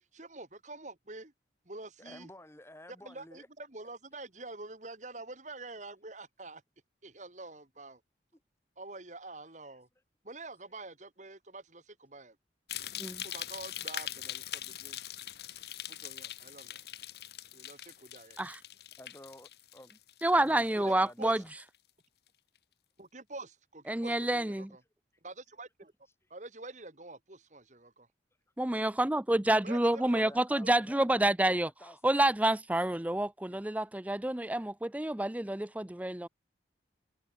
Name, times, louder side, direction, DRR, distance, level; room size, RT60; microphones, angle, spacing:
voice 1, 0.1-1.3 1.7-2.3 3.0-6.6 7.0-8.0 8.8-9.9 10.2-12.4 13.2-15.0 15.9-16.8 17.5-18.4 20.8-20.9 21.2-21.4 23.0-24.8 25.2-25.9 26.3-28.1 29.6-30.3 30.6-30.7 33.5-33.6, right 2 dB, 40° right, 2.2 m, -47 dB
voice 2, 2.0-3.5 8.3-8.4 19.0-19.9 20.2-21.5 28.8-28.9 30.0-32.3, left 1 dB, 15° left, 3.3 m, -52 dB
sound 1, 12.7-21.0 21.3-21.8 22.3-22.4, left 11 dB, 60° left, 4.4 m, -42 dB
voice 3, 20.2-21.4 23.9-24.8 28.6-31.7 32.0-36.3, right 1 dB, 10° right, 0.5 m, -28 dB
head